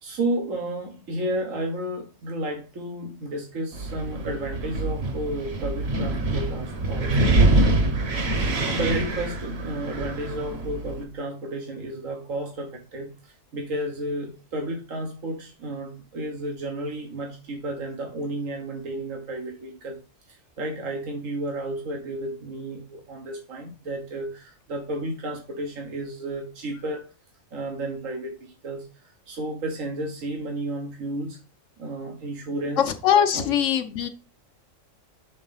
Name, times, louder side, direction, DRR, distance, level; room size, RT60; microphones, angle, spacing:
voice 1, 0.0-7.4 8.4-20.0 20.3-27.0 27.5-31.4 31.8-32.8 33.3-33.5, right 1 dB, 90° right, 2 dB, 1.7 m, -32 dB
Wind, 3.7-11.0, right 2 dB, 55° right, 1.3 m, -25 dB
voice 2, 32.8-34.1, left 9 dB, 75° left, 6 dB, 1.1 m, -21 dB
6.4 x 3.7 x 5.6 m, 0.32 s
omnidirectional pair, 1.3 m